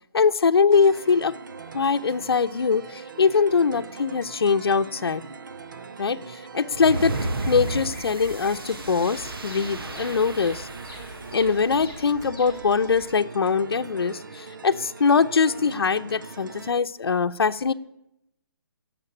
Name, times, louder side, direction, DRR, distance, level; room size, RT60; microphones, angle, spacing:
voice 1, 0.1-1.3 1.7-5.2 6.0-7.2 7.5-10.7 11.3-17.7, left 5 dB, 80° left, 0.8 m, -22 dB
sound 1, 0.7-16.7, right 4 dB, 55° right, 0.9 m, -42 dB
Bird vocalization bird call bird song, 6.7-13.1, equal, 15° right, 5.4 m, -44 dB
sound 2, 6.7-11.7, right 2 dB, 70° right, 1.5 m, -33 dB
18.0 x 7.5 x 9.8 m
hypercardioid pair, 180°, 13 cm